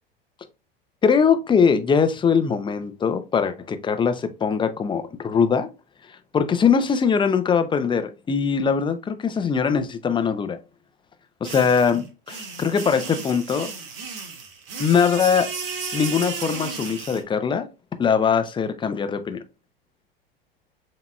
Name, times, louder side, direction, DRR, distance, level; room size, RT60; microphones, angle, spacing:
voice 1, 1.0-5.7 6.3-10.6 11.4-13.7 14.8-15.5 15.9-17.7 18.0-19.4, left 6 dB, 15° left, 0.6 m, -21 dB
sound 1, 11.4-17.2, right 5 dB, 70° right, 1.2 m, -34 dB
7.0 x 2.9 x 2.3 m
hypercardioid pair, 90°, 30 cm